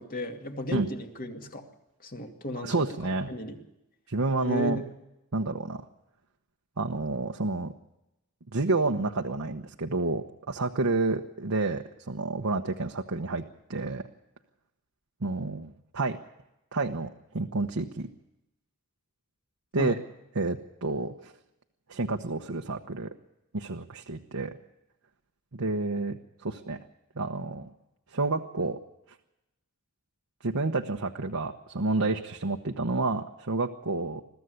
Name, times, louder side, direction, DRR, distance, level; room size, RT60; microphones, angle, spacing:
voice 1, 0.0-1.7 2.0-3.6 4.4-4.9 19.7-20.0, left 1 dB, 40° left, 4 dB, 2.4 m, -35 dB
voice 2, 2.6-3.3 4.1-4.8 5.3-5.8 6.8-7.7 8.5-14.1 15.2-16.2 16.7-18.1 19.7-20.0 20.3-21.3 21.9-23.1 23.5-24.6 25.5-26.8 27.2-27.7 28.1-28.8 30.4-34.2, right 3 dB, 80° right, 3 dB, 1.1 m, -29 dB
22.0 x 14.5 x 8.2 m, 0.94 s
head